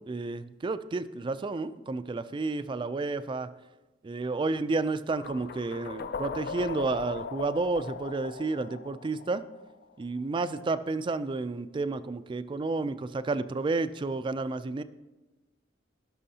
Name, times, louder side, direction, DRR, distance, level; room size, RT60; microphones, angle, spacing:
voice 1, 0.1-3.5 4.0-9.4 10.0-14.8, right 3 dB, 25° right, 13 dB, 0.3 m, -31 dB
sound 1, 5.1-10.0, left 5 dB, 55° left, 0.4 m, -39 dB
16.5 x 6.2 x 2.8 m, 1.2 s
head